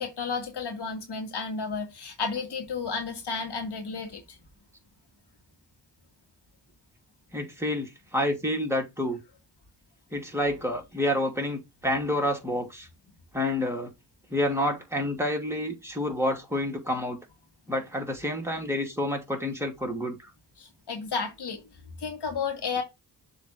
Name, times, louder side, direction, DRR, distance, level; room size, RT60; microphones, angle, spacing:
voice 1, 0.0-4.2 20.6-21.6 22.0-22.8, left 5 dB, 75° left, 1.9 m, -32 dB
voice 2, 7.3-9.2 10.1-12.9 13.3-13.9 14.3-17.2 17.7-20.2, left 1 dB, 5° right, 2.7 m, -28 dB
7.1 x 3.3 x 5.5 m
cardioid pair, 55°, 40 cm